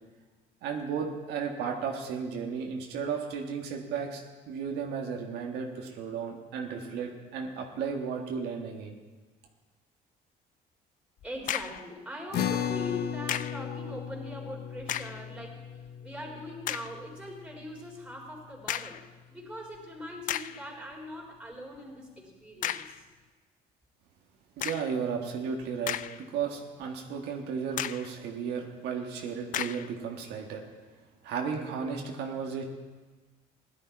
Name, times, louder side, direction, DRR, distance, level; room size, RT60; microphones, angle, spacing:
voice 1, 0.6-8.9 24.6-30.6 31.2-32.6, right 6 dB, 80° right, 1 dB, 1.6 m, -34 dB
sound 1, 11.2-11.9 13.3-13.7 14.8-15.3 15.9-16.0 16.6-17.0 18.7-19.1 19.7-19.8 20.3-20.7 22.6-23.0 24.6-25.0 25.6-26.4 26.8-26.9 27.8-28.1 29.5-29.9, left 11 dB, 50° left, 0.4 m, -34 dB
voice 2, 11.2-19.0 19.3-23.0, left 1 dB, 5° right, -2 dB, 3.9 m, -41 dB
sound 2, 12.3-19.0, left 9 dB, 65° left, 0.8 m, -36 dB
16.5 x 11.5 x 4.6 m, 1.3 s
cardioid pair, 110°, 17 cm